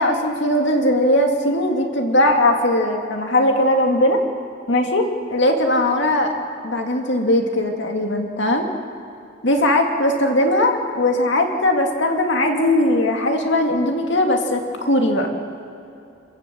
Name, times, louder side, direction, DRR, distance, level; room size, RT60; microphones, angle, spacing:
voice 1, 0.0-4.2 4.7-6.3 6.6-8.7 9.4-15.3, left 1 dB, 60° left, 3 dB, 2.3 m, -19 dB
27.5 x 15.5 x 7.6 m, 2.7 s
head